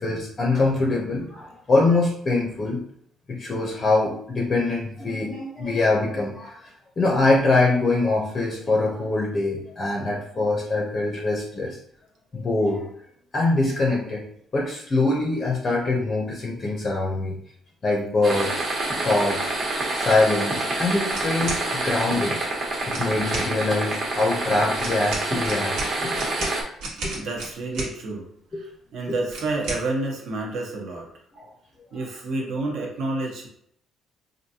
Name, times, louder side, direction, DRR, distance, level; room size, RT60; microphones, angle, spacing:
voice 1, 0.0-2.8 3.3-11.8 12.3-12.9 13.3-14.2 14.5-17.4 17.8-18.6 19.0-19.5 19.9-22.4 22.9-25.8 26.0-26.5 27.0-27.1 27.8-27.9 28.5-28.6 31.3-31.4, left 2 dB, 25° left, -1 dB, 0.6 m, -23 dB
sound 1, 18.2-26.6, right 2 dB, 35° right, 1.0 m, -27 dB
sound 2, 21.1-21.6 22.8-23.5 24.8-27.9 29.3-29.8, right 3 dB, 90° right, 1.3 m, -33 dB
voice 2, 27.1-28.2 28.5-31.1 31.9-33.5, right 2 dB, 65° right, 0 dB, 1.0 m, -29 dB
4.6 x 2.6 x 2.7 m, 0.67 s
cardioid pair, 165°, 0 cm